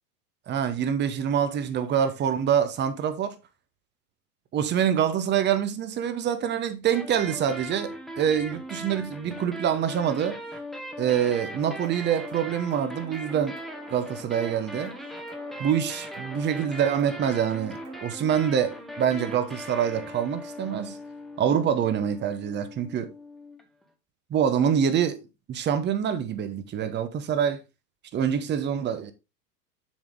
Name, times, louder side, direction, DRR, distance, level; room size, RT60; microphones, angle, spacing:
voice 1, 0.5-3.4 4.5-10.4 11.0-13.6 13.9-14.9 15.6-21.0 21.4-23.1 24.3-25.2 25.5-27.6 28.1-29.1, right 8 dB, 20° right, 0.9 m, -25 dB
sound 1, 6.9-23.8, equal, ahead, 1.2 m, -39 dB
sound 2, 11.2-18.1, right 7 dB, 40° right, 2.0 m, -49 dB
7.0 x 5.1 x 3.5 m
hypercardioid pair, 100°, 48 cm